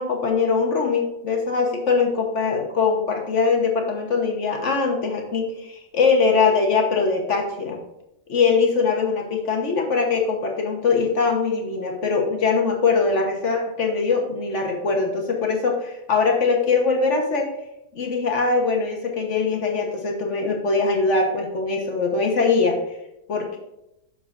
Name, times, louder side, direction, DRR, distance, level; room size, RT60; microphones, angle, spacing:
voice 1, 0.0-7.8 8.3-17.5 17.9-22.8 23.3-23.6, left 4 dB, 45° left, 2 dB, 1.4 m, -22 dB
10.5 x 6.8 x 2.6 m, 0.85 s
omnidirectional pair, 1.9 m